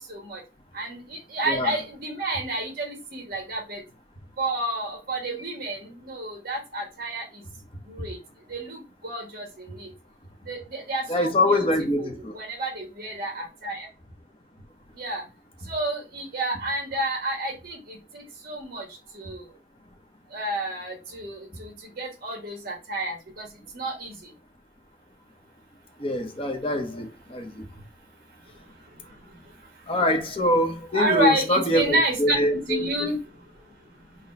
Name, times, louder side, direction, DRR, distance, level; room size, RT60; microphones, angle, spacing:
voice 1, 0.1-0.4 0.7-3.8 4.4-7.2 7.9-8.2 8.5-9.9 10.5-11.6 12.0-13.9 15.0-15.2 15.7-17.8 18.1-18.8 19.1-19.4 20.3-21.7 22.0-23.4 23.7-24.1 30.9-33.2, right 1 dB, 55° right, 1.3 m, -30 dB
voice 2, 1.4-1.8 11.1-12.3 26.0-27.5 29.9-32.8, left 1 dB, 30° left, 0.8 m, -24 dB
4.1 x 2.2 x 4.1 m
head